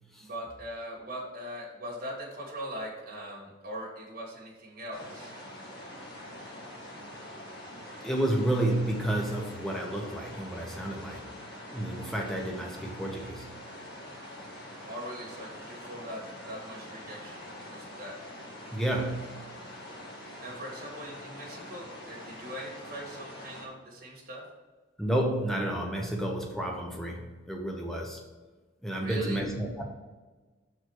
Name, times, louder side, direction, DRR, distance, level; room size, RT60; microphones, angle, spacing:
voice 1, 0.2-5.3 14.9-18.2 20.4-24.5 28.9-29.5, equal, 50° right, -3 dB, 2.0 m, -41 dB
sound 1, 4.9-23.7, left 1 dB, 55° left, 1.6 m, -45 dB
voice 2, 8.0-11.3 11.7-13.6 18.7-19.4 25.0-28.2 28.8-29.8, right 1 dB, ahead, 0 dB, 0.9 m, -31 dB
6.0 x 4.6 x 4.7 m, 1.3 s
head